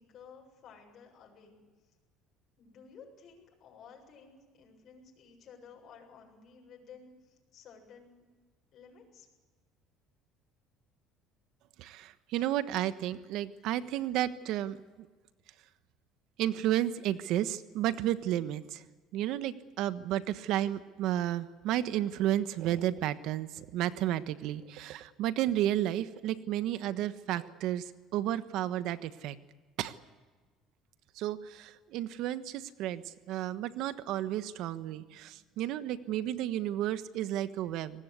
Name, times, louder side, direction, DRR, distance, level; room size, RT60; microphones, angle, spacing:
voice 1, 0.0-1.6 2.6-8.3 8.7-9.3 13.6-13.7 14.5-14.6, left 6 dB, 50° left, 0 dB, 7.4 m, -54 dB
voice 2, 11.8-15.1 16.4-18.8 19.1-29.4 29.8-29.9 31.2-38.0, right 12 dB, 70° right, 12 dB, 1.3 m, -32 dB
24.0 x 19.5 x 8.3 m, 1.3 s
cardioid pair, 115°, 0 cm